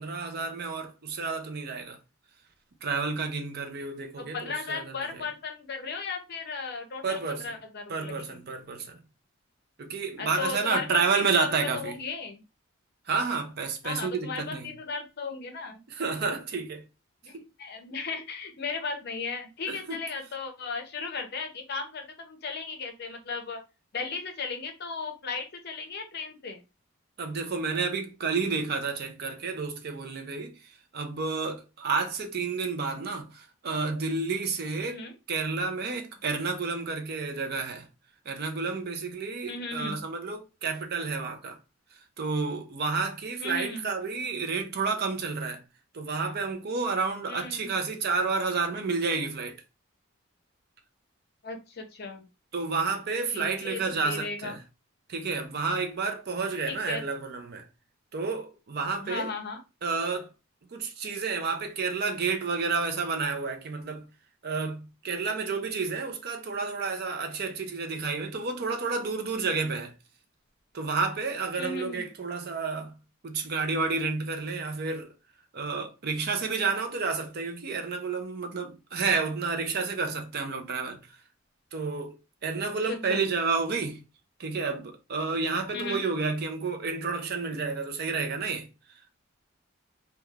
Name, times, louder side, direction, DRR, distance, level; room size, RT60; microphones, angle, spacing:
voice 1, 0.0-2.0 2.8-5.2 7.0-7.4 7.9-9.0 9.8-12.0 13.1-14.7 15.9-16.8 17.3-17.5 19.7-20.0 27.2-35.0 35.3-37.9 38.3-41.6 41.9-45.6 45.9-49.6 52.5-54.6 55.1-57.7 58.1-59.3 59.8-60.3 60.7-64.1 64.4-69.9 70.7-73.0 73.2-75.1 75.5-81.2 81.7-82.2 82.4-84.0 84.4-88.7, right 4 dB, 50° right, 0.5 m, -30 dB
voice 2, 4.2-8.4 10.2-12.4 13.8-15.8 17.2-23.6 23.9-26.6 34.9-35.1 39.5-40.0 43.4-43.9 47.3-47.7 51.4-52.2 53.3-54.5 56.7-57.0 59.0-59.6 71.6-72.1 82.9-83.2 85.7-86.0, left 4 dB, 50° left, 0.6 m, -36 dB
3.1 x 2.3 x 2.3 m
head